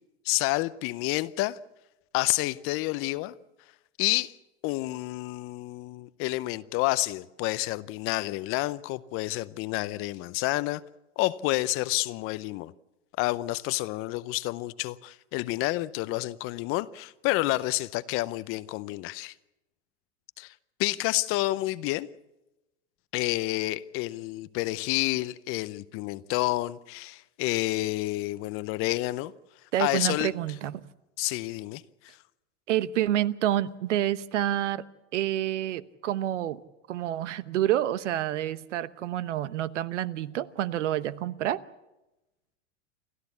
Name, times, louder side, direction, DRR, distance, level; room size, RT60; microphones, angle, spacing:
voice 1, 0.2-1.6 2.1-3.3 4.0-4.3 4.6-10.8 11.2-12.7 13.2-19.3 20.4-20.5 20.8-22.1 23.1-29.3 29.8-30.3 31.2-32.2, left 19 dB, 35° left, 0.6 m, -29 dB
voice 2, 29.7-30.8 32.7-34.8 35.1-36.6 36.9-41.6, right 12 dB, 75° right, 1.0 m, -28 dB
29.0 x 13.0 x 8.3 m
hypercardioid pair, 120°, 37 cm